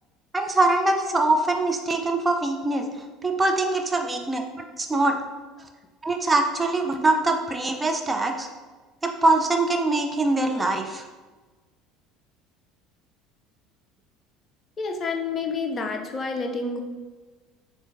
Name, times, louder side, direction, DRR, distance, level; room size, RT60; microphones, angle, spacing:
voice 1, 0.3-2.9 3.2-5.2 6.0-8.5 9.0-11.1, right 2 dB, 15° right, 4 dB, 0.4 m, -23 dB
voice 2, 14.8-16.8, left 4 dB, 35° left, 3 dB, 0.5 m, -29 dB
7.0 x 2.5 x 2.5 m, 1.3 s
figure-of-eight pair, 65°, 0 cm